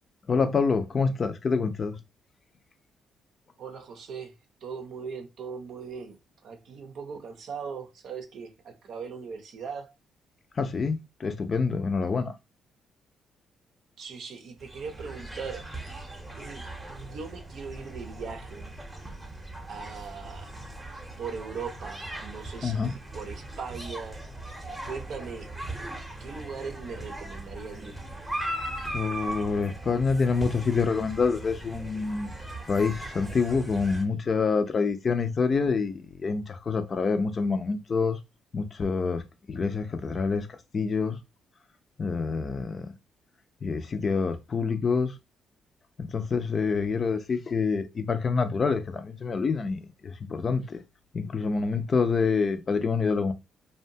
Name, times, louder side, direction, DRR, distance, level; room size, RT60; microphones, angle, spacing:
voice 1, 0.3-2.0 10.5-12.4 22.6-22.9 28.9-32.3 32.7-38.2 38.5-41.2 42.0-42.9 43.6-45.2 46.0-50.8 51.1-53.3, left 5 dB, 40° left, 0.4 m, -27 dB
voice 2, 3.6-4.4 4.6-6.2 6.4-9.9 14.0-15.6 16.3-18.7 19.7-20.5 21.2-24.2 24.8-25.5 26.2-28.0, right 5 dB, 70° right, 0.6 m, -39 dB
sound 1, 14.6-34.0, right 1 dB, 5° right, 0.7 m, -39 dB
2.7 x 2.2 x 2.7 m
cardioid pair, 100°, 0 cm